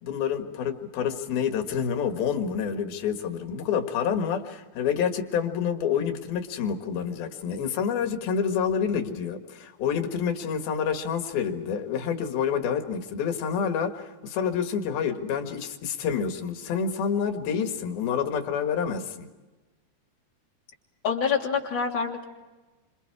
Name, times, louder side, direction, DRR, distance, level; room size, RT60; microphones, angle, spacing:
voice 1, 0.0-19.3, left 7 dB, 75° left, 6 dB, 3.6 m, -28 dB
voice 2, 21.0-22.2, left 6 dB, 30° left, -1 dB, 3.5 m, -26 dB
28.5 x 27.0 x 4.8 m, 1.2 s
omnidirectional pair, 4.3 m